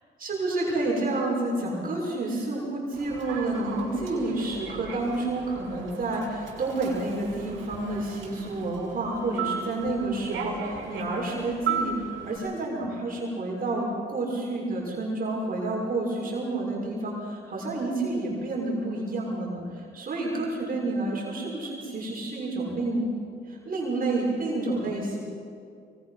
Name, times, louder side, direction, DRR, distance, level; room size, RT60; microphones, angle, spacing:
voice 1, 0.2-23.1 23.5-25.2, right 2 dB, 45° right, -3 dB, 6.4 m, -29 dB
Human voice / Subway metro underground, 2.9-12.4, right 6 dB, 80° right, 6.3 m, -36 dB
24.0 x 20.5 x 6.0 m, 2.4 s
cardioid pair, 90°, 20 cm